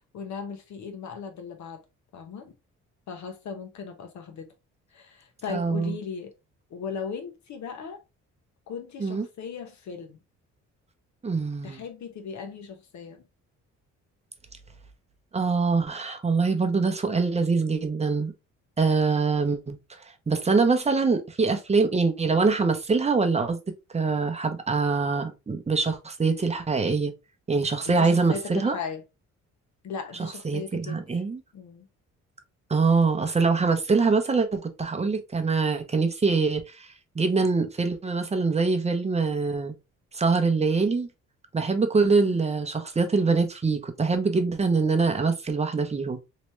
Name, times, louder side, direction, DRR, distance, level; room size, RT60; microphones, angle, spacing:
voice 1, 0.1-1.8 2.1-2.5 3.1-4.5 4.9-6.3 6.7-8.0 8.7-10.2 11.6-13.2 27.8-29.0 29.8-31.0 31.5-31.9 42.2-42.4, left 6 dB, 65° left, 1.1 m, -37 dB
voice 2, 5.5-6.0 9.0-9.2 11.2-11.8 15.3-18.3 18.8-19.8 20.3-23.6 23.9-27.1 27.5-28.7 30.4-31.4 32.7-36.9 37.1-39.7 40.1-41.1 41.5-46.2, right 4 dB, 20° right, 0.8 m, -24 dB
3.2 x 2.8 x 3.1 m
cardioid pair, 90°, 30 cm